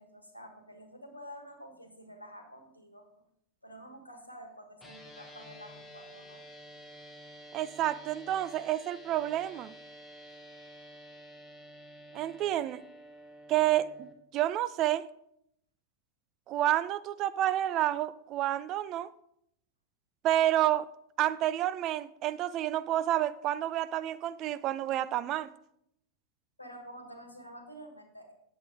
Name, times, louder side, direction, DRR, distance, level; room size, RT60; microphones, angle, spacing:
voice 1, 0.0-3.0 3.6-6.4 26.6-28.3, equal, 85° left, 1.3 m, -49 dB
sound 1, 4.8-14.1, equal, 5° left, 1.1 m, -50 dB
voice 2, 7.5-9.7 12.1-12.8 13.5-15.1 16.5-19.1 20.2-20.8 21.2-25.5, right 13 dB, 35° right, 0.3 m, -29 dB
8.1 x 7.9 x 3.6 m
figure-of-eight pair, 90°, 0 cm